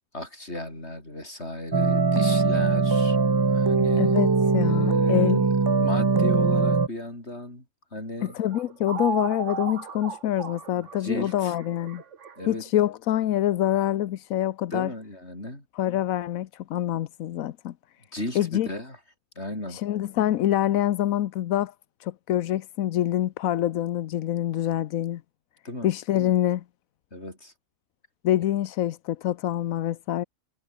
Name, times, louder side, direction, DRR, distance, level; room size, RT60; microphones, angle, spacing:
voice 1, 0.1-3.2 3.5-4.2 4.6-5.4 5.8-7.6 7.9-8.3 10.7-11.5 12.4-12.6 14.7-15.6 18.1-19.0 19.4-19.8 25.6-25.9 27.1-27.5, left 1 dB, 50° left, 8.1 m, -35 dB
sound 1, 1.7-6.9, right 4 dB, 25° right, 0.5 m, -21 dB
voice 2, 4.0-4.3 4.5-5.4 8.2-12.0 12.5-14.9 15.7-17.7 18.3-18.7 19.7-21.7 22.0-25.2 25.8-26.6 28.2-30.2, left 12 dB, 85° left, 1.1 m, -26 dB
sound 2, 8.2-12.8, right 6 dB, 60° right, 1.7 m, -35 dB
omnidirectional pair, 1.4 m